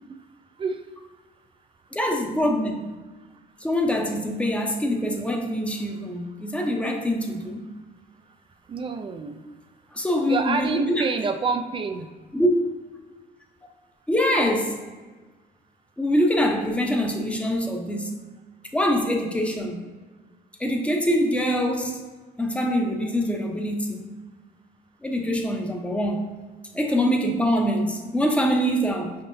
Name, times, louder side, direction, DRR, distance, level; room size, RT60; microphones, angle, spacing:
voice 1, 1.9-2.9 3.6-7.6 9.9-11.0 12.3-12.5 14.1-14.8 16.0-18.2 18.7-19.8 20.6-22.0 22.4-24.0 25.0-26.3 26.7-29.2, equal, 5° left, 2 dB, 0.7 m, -24 dB
voice 2, 8.7-9.4 10.2-12.1 27.6-27.7, right 4 dB, 30° right, 6 dB, 0.4 m, -27 dB
5.4 x 3.6 x 2.6 m, 1.3 s
cardioid pair, 110°, 17 cm